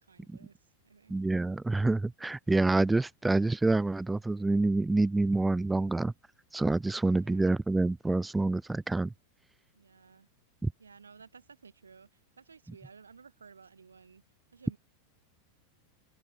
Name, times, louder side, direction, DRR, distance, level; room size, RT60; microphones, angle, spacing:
voice 1, 0.0-1.2 7.1-7.6 9.7-10.3 10.8-14.2 14.5-14.8, right 5 dB, 75° right, 3.3 m, -55 dB
voice 2, 1.1-6.1 6.5-9.1 10.6-10.7, right 2 dB, 10° right, 0.3 m, -27 dB
open air
figure-of-eight pair, 90°, 0 cm